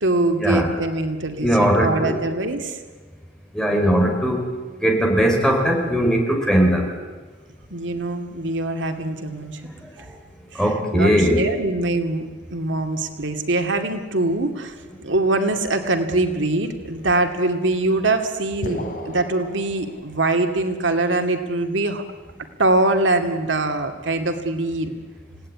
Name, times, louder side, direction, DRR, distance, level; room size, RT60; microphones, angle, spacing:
voice 1, 0.0-2.8 7.7-9.7 10.0-10.1 10.5-22.0 22.6-24.9, right 2 dB, 90° right, 6 dB, 2.5 m, -23 dB
voice 2, 1.4-2.2 3.5-4.4 4.8-6.9 10.6-11.4, equal, 5° left, 1 dB, 4.7 m, -19 dB
sound 1, 18.6-20.6, left 1 dB, 50° left, 3.2 m, -34 dB
29.0 x 18.0 x 9.9 m, 1.3 s
head